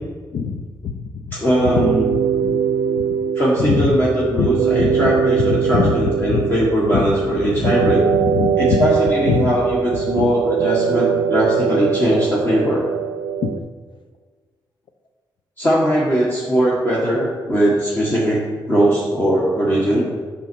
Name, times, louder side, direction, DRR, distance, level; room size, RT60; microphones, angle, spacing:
voice 1, 0.3-1.4 1.8-1.9 2.4-2.6 3.0-3.1 3.6-4.0 4.4-4.5 4.8-5.1 5.5-5.9 6.3-6.5 6.9-7.1 7.6-7.9 8.2-8.9 9.3-9.5 10.2-10.3 13.4-13.5, left 6 dB, 75° left, 7 dB, 0.7 m, -22 dB
voice 2, 1.3-2.1 3.3-8.0 8.6-12.8 15.6-18.4 18.7-20.0, equal, 25° left, -5 dB, 1.6 m, -19 dB
sound 1, 1.6-13.6, right 7 dB, 85° right, 0.5 m, -21 dB
10.5 x 6.4 x 4.6 m, 1.5 s
wide cardioid pair, 155°, 8 cm